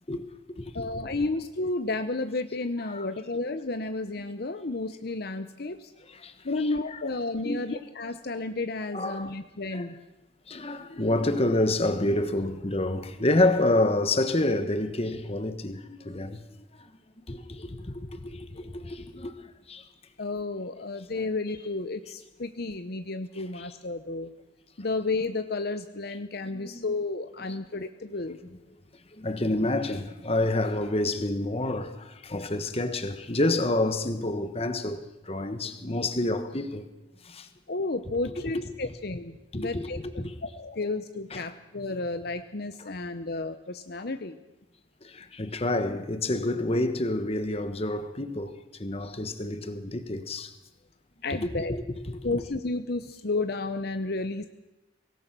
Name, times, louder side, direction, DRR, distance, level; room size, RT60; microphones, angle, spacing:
voice 1, 0.1-0.9 2.9-3.1 6.1-7.0 7.4-7.6 8.9-9.3 9.7-9.9 10.5-16.4 16.8-16.9 17.3-19.3 19.7-19.8 23.5-23.7 26.4-26.9 27.5-27.6 29.1-36.9 37.2-37.5 38.5-38.6 39.5-40.3 41.3-41.4 45.0-50.5 51.4-52.4, left 2 dB, 30° left, 1.4 m, -28 dB
voice 2, 0.7-5.9 6.4-10.0 20.2-24.3 24.8-28.4 37.7-40.0 40.4-44.4 51.2-51.8 52.2-54.5, left 3 dB, 55° left, 0.9 m, -32 dB
24.0 x 18.5 x 6.1 m
head